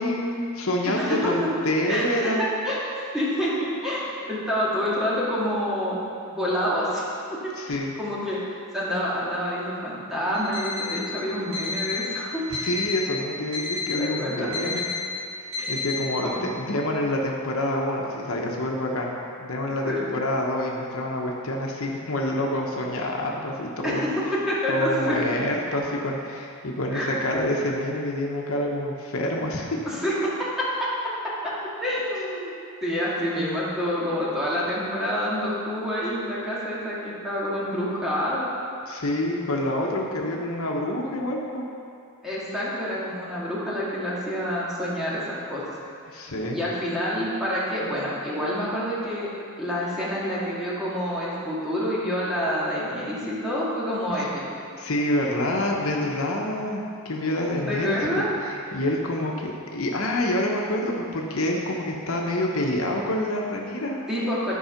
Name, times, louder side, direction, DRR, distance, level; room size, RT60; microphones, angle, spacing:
voice 1, 0.0-2.4 7.6-7.9 12.6-14.8 15.4-19.1 19.4-24.0 24.7-29.7 38.9-41.6 46.1-46.6 54.2-54.3 54.8-64.0, left 1 dB, 70° left, -1 dB, 1.1 m, -27 dB
voice 2, 0.8-1.5 1.9-2.8 3.1-6.0 6.3-7.0 7.3-12.4 13.6-14.5 15.6-15.7 16.2-16.4 19.9-20.1 23.8-25.3 26.9-27.2 29.8-31.1 31.4-32.5 32.8-38.5 42.2-45.6 46.1-46.2 46.5-49.3 49.6-54.6 57.7-58.3 64.1-64.5, equal, ahead, -8 dB, 1.9 m, -27 dB
Alarm, 10.3-11.0 11.5-12.1 12.5-13.1 13.5-14.1 14.5-15.0 15.5-16.0, left 4 dB, 65° right, 2.4 m, -30 dB
11.0 x 4.8 x 5.8 m, 2.5 s
head